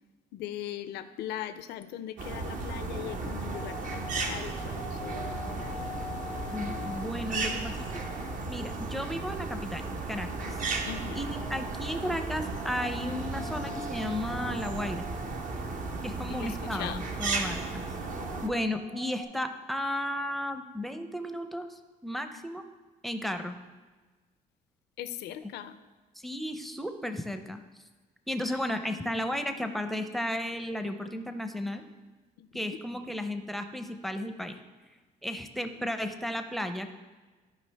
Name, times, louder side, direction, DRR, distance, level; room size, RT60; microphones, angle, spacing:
voice 1, 0.3-5.8 10.9-11.2 16.3-17.0 25.0-25.8 28.5-28.6 29.0-29.2 32.4-32.7, left 11 dB, 75° left, 11 dB, 0.5 m, -40 dB
sound 1, 2.2-18.5, right 3 dB, 50° right, 0.9 m, -35 dB
sound 2, 2.8-8.8 10.6-16.0 17.3-19.2, left 2 dB, 70° right, 2.5 m, -45 dB
voice 2, 6.5-8.0 8.5-9.8 10.1-10.6 11.1-15.1 16.0-17.9 18.4-22.6 23.0-23.6 25.4-25.5 26.2-27.6 28.3-31.8 32.5-34.6 35.2-36.9, left 1 dB, ahead, 7 dB, 0.6 m, -34 dB
14.0 x 5.0 x 3.4 m, 1.3 s
cardioid pair, 110°, 17 cm